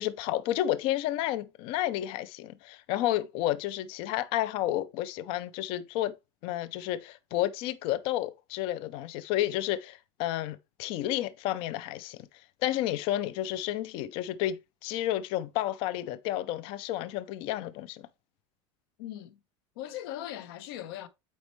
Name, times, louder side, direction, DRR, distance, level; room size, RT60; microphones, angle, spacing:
voice 1, 0.0-6.1 6.4-12.3 12.6-14.6 14.8-18.1, left 13 dB, 40° left, 0.5 m, -31 dB
voice 2, 19.0-19.4 19.8-21.1, left 12 dB, 65° left, 0.8 m, -39 dB
8.4 x 4.4 x 3.1 m
supercardioid pair, 180°, 14 cm